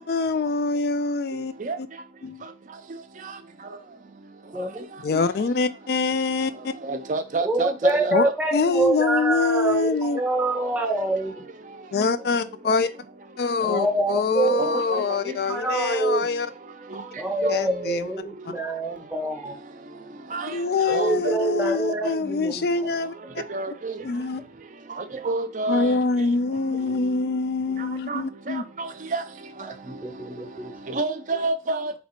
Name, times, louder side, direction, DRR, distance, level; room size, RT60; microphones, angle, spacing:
voice 1, 0.0-1.9 2.2-2.4 5.0-6.7 8.1-8.2 8.5-10.2 11.9-12.9 13.4-16.5 17.5-18.1 18.4-18.5 20.4-23.4 24.0-24.4 25.7-28.6, left 4 dB, 55° left, 0.3 m, -25 dB
voice 2, 4.5-4.8 7.4-11.3 13.6-14.6 15.5-16.2 17.2-19.5 20.9-22.6 29.8-31.0, right 2 dB, 10° right, 0.7 m, -26 dB
voice 3, 6.8-8.1 14.6-15.0 17.4-17.6 20.3-20.5 20.9-21.3 23.5-24.0 25.0-25.9 28.1-28.2 28.5-29.2 30.9-31.9, right 3 dB, 45° right, 0.4 m, -28 dB
3.4 x 2.9 x 4.3 m
head